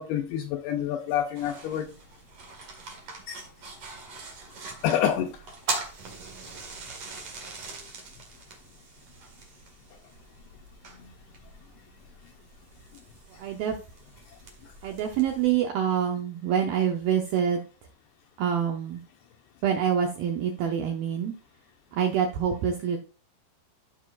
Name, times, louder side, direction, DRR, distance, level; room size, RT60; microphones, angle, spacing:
voice 1, 0.0-1.9 3.3-3.4 4.8-5.4 11.0-11.1 14.6-14.7, left 10 dB, 85° left, 2.4 m, -28 dB
sound 1, 1.3-15.5, right 3 dB, 50° right, 2.2 m, -41 dB
voice 2, 13.4-13.8 14.8-17.6 18.4-19.0 19.6-21.3 21.9-23.0, right 8 dB, 80° right, 2.1 m, -26 dB
14.5 x 5.1 x 2.4 m
omnidirectional pair, 5.2 m